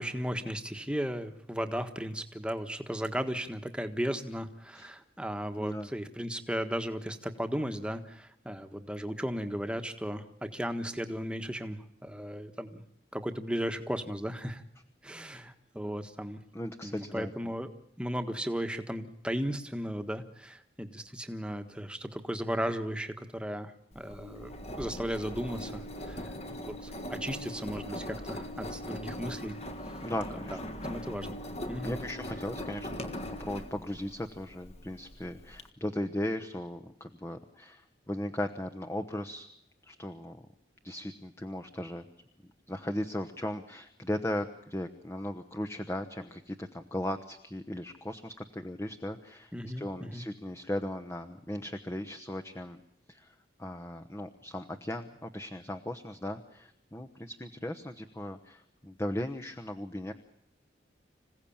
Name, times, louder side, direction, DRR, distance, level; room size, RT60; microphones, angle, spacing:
voice 1, 0.0-12.8 13.1-14.6 15.0-16.4 16.8-17.7 18.0-26.2 26.7-29.5 30.5-31.4 31.7-32.0 49.5-50.2, equal, 5° right, 7 dB, 1.5 m, -35 dB
voice 2, 5.6-5.9 16.5-17.5 27.7-28.0 30.0-30.6 31.8-39.5 39.8-40.4 40.8-42.1 42.7-52.8 53.1-60.1, left 1 dB, 15° left, 5 dB, 1.1 m, -37 dB
Engine, 23.9-35.6, left 1 dB, 35° left, 1.6 m, -40 dB
27.0 x 16.5 x 8.8 m, 0.77 s
head